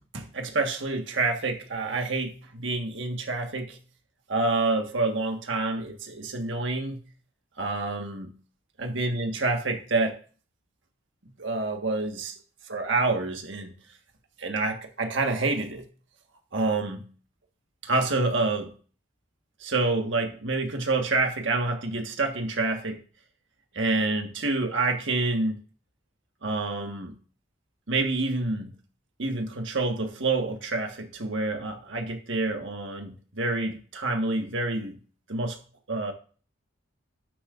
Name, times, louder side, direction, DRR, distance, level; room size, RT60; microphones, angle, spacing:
voice 1, 0.1-3.8 4.3-7.0 7.6-8.3 8.8-10.2 11.4-12.3 12.7-13.7 14.4-15.9 16.5-17.1 17.8-18.7 19.6-23.0 23.7-25.5 26.4-27.1 27.9-28.7 29.2-35.0 35.3-35.6 35.9-36.1, right 3 dB, 65° right, 4 dB, 1.5 m, -28 dB
13.0 x 10.5 x 2.5 m, 0.40 s
head